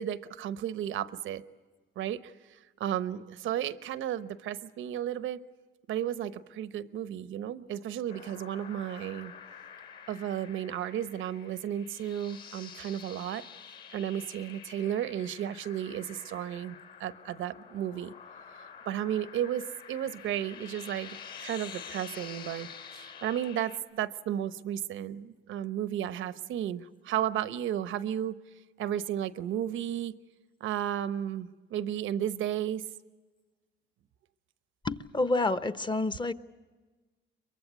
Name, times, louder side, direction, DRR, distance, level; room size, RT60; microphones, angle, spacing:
voice 1, 0.0-1.4 2.0-2.2 2.8-5.4 5.9-9.3 10.1-13.4 13.9-18.1 18.9-22.7 22.9-28.4 28.8-30.2 30.6-32.8, right 10 dB, 80° right, 13 dB, 0.9 m, -33 dB
sound 1, 8.1-23.8, left 7 dB, 55° left, 4.3 m, -48 dB
voice 2, 34.8-36.3, left 2 dB, 25° left, 12 dB, 1.0 m, -28 dB
23.0 x 23.0 x 8.2 m, 1.3 s
cardioid pair, 90°, 20 cm